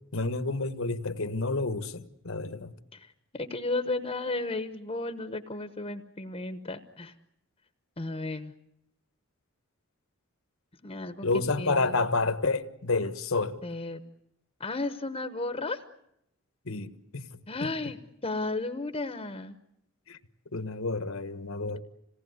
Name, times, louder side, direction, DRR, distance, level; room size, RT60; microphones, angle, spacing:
voice 1, 0.1-2.7 11.2-13.6 16.7-17.3 20.1-20.2 20.5-21.8, left 3 dB, 70° left, 1.4 m, -29 dB
voice 2, 2.9-7.1 8.0-8.5 10.8-12.0 13.6-14.0 14.6-15.8 17.5-19.6, left 2 dB, 30° left, 1.0 m, -34 dB
27.0 x 18.5 x 9.5 m
head